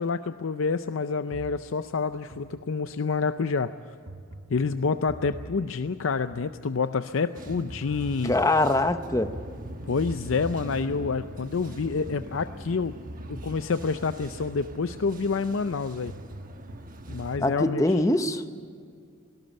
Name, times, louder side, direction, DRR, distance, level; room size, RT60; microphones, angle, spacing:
voice 1, 0.0-3.9 4.5-8.3 9.8-13.0 13.3-16.1 17.1-18.0, left 4 dB, 75° left, 11 dB, 0.5 m, -28 dB
sound 1, 1.3-3.2 4.1-7.1 8.1-11.1 12.1-15.1 16.1-17.4, right 1 dB, 70° right, 1.5 m, -46 dB
sound 2, 7.3-17.4, right 1 dB, 45° right, 1.2 m, -42 dB
voice 2, 8.2-9.3 17.4-18.4, left 2 dB, 15° left, 10 dB, 0.7 m, -23 dB
18.5 x 17.5 x 8.9 m, 2.2 s
head